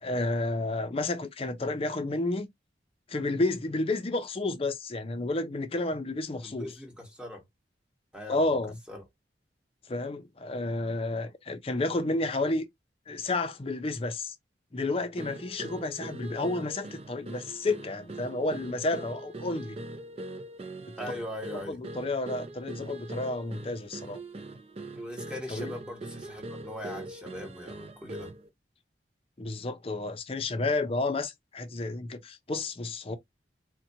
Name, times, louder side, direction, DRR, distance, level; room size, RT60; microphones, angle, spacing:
voice 1, 0.0-2.5 3.1-6.7 8.3-8.8 9.9-12.7 13.1-14.3 14.7-19.8 20.9-21.0 21.7-24.2 25.5-25.7 29.4-33.2, left 2 dB, 35° left, 0.5 m, -31 dB
voice 2, 6.4-7.4 8.1-8.6 8.9-9.0 21.0-21.8 24.9-28.3, left 1 dB, 5° right, 1.1 m, -40 dB
sound 1, 15.2-28.5, right 2 dB, 35° right, 0.5 m, -42 dB
4.1 x 2.2 x 2.7 m
head